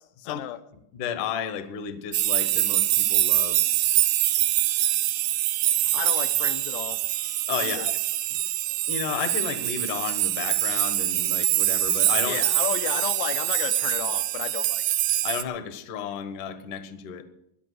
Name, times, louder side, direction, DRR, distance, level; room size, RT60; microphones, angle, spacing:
voice 1, 0.3-0.6 5.8-7.1 7.6-7.9 12.2-14.8, left 13 dB, 80° left, 11 dB, 2.9 m, -33 dB
voice 2, 0.9-3.7 7.5-8.0 8.9-12.4 15.2-17.2, left 8 dB, 65° left, 9 dB, 2.1 m, -32 dB
sound 1, 2.1-15.4, right 15 dB, 80° right, 2.9 m, -24 dB
16.5 x 10.0 x 6.3 m, 0.80 s
omnidirectional pair, 5.1 m